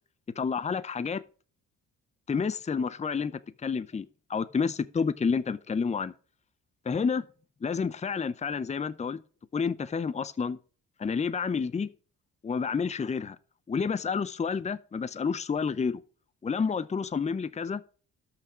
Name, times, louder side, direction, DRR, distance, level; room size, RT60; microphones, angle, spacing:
voice 1, 0.4-1.2 2.3-6.1 6.9-7.3 7.6-9.2 9.5-10.6 11.0-11.9 12.4-13.4 13.7-16.0 16.4-17.8, left 5 dB, 25° left, 0.7 m, -29 dB
12.5 x 5.9 x 5.1 m
cardioid pair, 90°, 30 cm